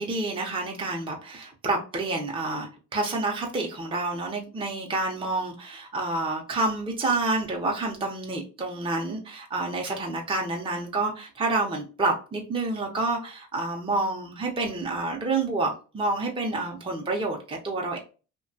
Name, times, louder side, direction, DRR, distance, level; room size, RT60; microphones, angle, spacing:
voice 1, 0.0-18.0, right 2 dB, 15° right, 0 dB, 0.6 m, -28 dB
2.8 x 2.2 x 2.6 m, 0.34 s
cardioid pair, 90°, 30 cm